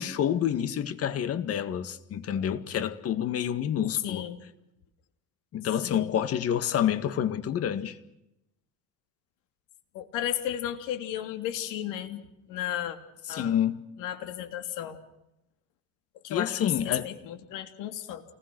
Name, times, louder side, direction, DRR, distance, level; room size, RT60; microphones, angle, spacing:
voice 1, 0.0-4.3 5.5-8.0 13.3-13.8 16.3-17.1, left 9 dB, 50° left, 2.0 m, -28 dB
voice 2, 4.0-4.4 5.8-6.2 9.9-12.2 12.5-13.0 13.3-13.5 14.0-15.0 16.2-18.2, left 11 dB, 80° left, 3.1 m, -34 dB
29.5 x 20.5 x 6.3 m
cardioid pair, 135°, 31 cm